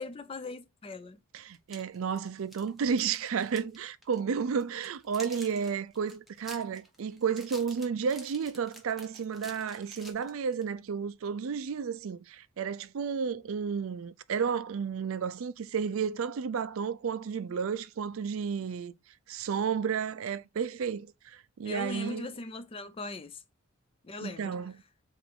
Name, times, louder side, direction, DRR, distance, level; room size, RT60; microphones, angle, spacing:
voice 1, 0.0-1.2 21.6-23.4 24.0-24.6, left 3 dB, 25° left, 0.4 m, -40 dB
voice 2, 1.3-18.9 19.3-22.3 24.2-24.7, right 6 dB, 70° right, 0.4 m, -32 dB
sound 1, 1.5-3.8 4.0-4.2 4.6-10.7, equal, ahead, 0.9 m, -49 dB
4.7 x 2.6 x 3.6 m
head